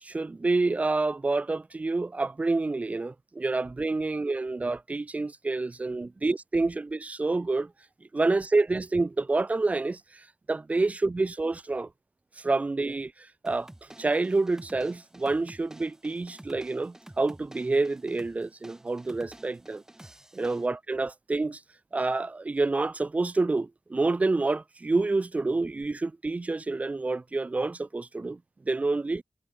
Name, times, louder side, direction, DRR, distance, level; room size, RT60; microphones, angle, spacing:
voice 1, 0.0-7.7 8.1-11.9 12.4-19.8 20.3-21.6 21.9-29.2, right 3 dB, 25° right, 1.0 m, -28 dB
sound 1, 13.5-20.7, right 1 dB, 10° right, 3.3 m, -50 dB
wide cardioid pair, 145°, 5 cm